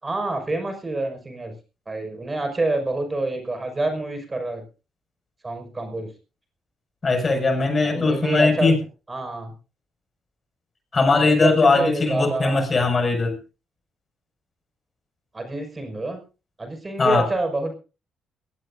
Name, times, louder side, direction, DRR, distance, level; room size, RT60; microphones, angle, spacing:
voice 1, 0.0-1.5 1.9-4.6 5.4-6.1 7.8-8.7 9.1-9.5 11.2-12.6 15.3-16.2 16.6-17.7, right 2 dB, 25° right, 6 dB, 5.8 m, -27 dB
voice 2, 7.0-8.8 10.9-13.4 17.0-17.3, left 3 dB, 35° left, 5 dB, 6.3 m, -19 dB
22.0 x 16.5 x 2.7 m, 0.33 s
hypercardioid pair, 50°, 0 cm